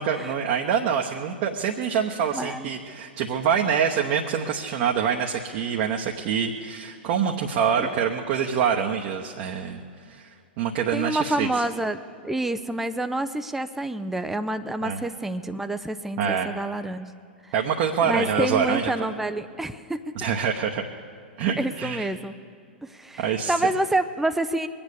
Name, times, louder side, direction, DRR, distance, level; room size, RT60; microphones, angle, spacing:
voice 1, 0.0-9.8 10.1-10.3 10.6-11.5 14.8-15.0 16.2-16.5 17.5-18.9 20.2-20.8 21.4-22.1 23.2-23.5, right 7 dB, 45° right, 1 dB, 1.0 m, -25 dB
voice 2, 2.3-2.7 7.8-7.9 10.9-17.1 17.4-17.5 18.0-20.1 21.6-22.4 22.8-24.7, right 1 dB, 5° right, 9 dB, 0.5 m, -28 dB
22.5 x 8.8 x 6.8 m, 2.3 s
figure-of-eight pair, 95°, 6 cm